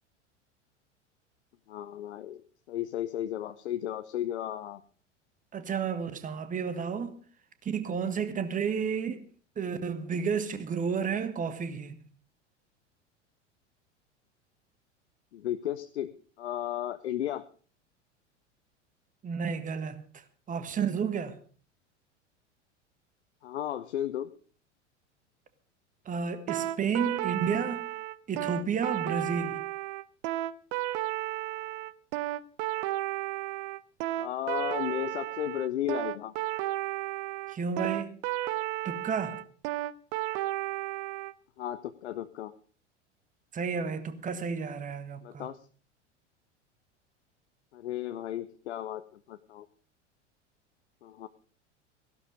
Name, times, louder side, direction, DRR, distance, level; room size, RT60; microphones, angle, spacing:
voice 1, 1.7-2.4 2.7-4.8 15.3-16.1 16.4-17.4 23.4-24.3 34.2-36.3 41.6-42.5 45.2-45.6 47.7-49.7 51.0-51.3, left 12 dB, 65° left, 0.8 m, -34 dB
voice 2, 5.5-7.2 7.6-9.2 9.5-12.0 19.2-21.4 26.0-27.9 28.3-29.6 37.5-38.2 38.8-39.4 43.5-45.5, right 6 dB, 20° right, 1.6 m, -32 dB
sound 1, 26.5-41.3, right 16 dB, 45° right, 0.8 m, -33 dB
16.0 x 12.0 x 5.2 m
figure-of-eight pair, 85°, 36 cm